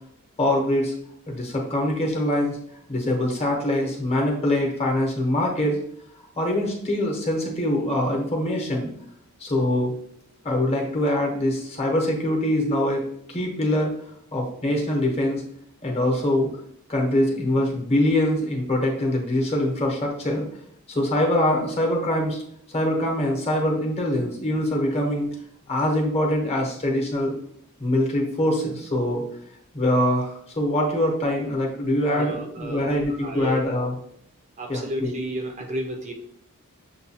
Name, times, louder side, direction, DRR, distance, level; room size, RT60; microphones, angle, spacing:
voice 1, 0.4-0.9 1.3-2.6 2.9-5.8 6.4-8.9 9.4-9.9 10.4-13.0 13.3-13.9 14.3-15.4 15.8-16.5 16.9-20.5 20.9-22.4 22.7-25.3 25.7-27.3 27.8-29.3 29.7-33.9 34.7-35.1, left 1 dB, 30° left, 0 dB, 0.8 m, -23 dB
voice 2, 32.1-33.6 34.6-36.1, equal, 30° right, 3 dB, 0.5 m, -32 dB
6.6 x 2.3 x 2.7 m, 0.70 s
head